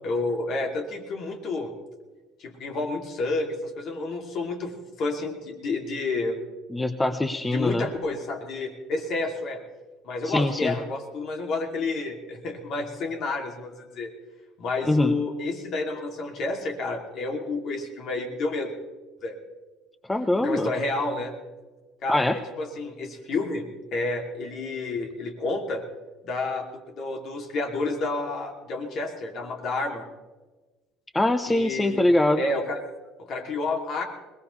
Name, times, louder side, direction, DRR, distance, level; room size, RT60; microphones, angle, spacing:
voice 1, 0.0-1.7 2.4-4.7 5.0-6.4 7.5-9.6 10.0-14.1 14.6-18.7 19.2-19.4 20.4-21.3 22.0-23.6 23.9-25.8 26.2-30.1 31.5-32.0 32.4-32.8 33.2-34.0, left 3 dB, 55° left, 3 dB, 2.8 m, -30 dB
voice 2, 6.7-7.9 10.2-10.8 14.8-15.1 20.1-20.7 22.1-22.4 31.1-32.4, left 1 dB, 15° left, 10 dB, 0.9 m, -23 dB
21.5 x 19.0 x 3.3 m, 1.3 s
hypercardioid pair, 65°, 0 cm